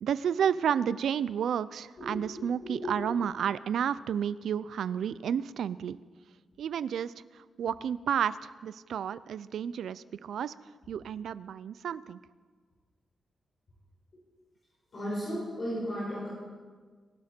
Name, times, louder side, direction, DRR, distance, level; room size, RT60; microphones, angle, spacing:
voice 1, 0.0-6.0 6.6-10.5 10.9-12.2, right 8 dB, 80° right, 17 dB, 0.5 m, -31 dB
voice 2, 2.0-2.9 14.9-16.3, equal, 40° left, -9 dB, 5.5 m, -35 dB
23.0 x 12.5 x 4.4 m, 1.5 s
wide cardioid pair, 165°, 0 cm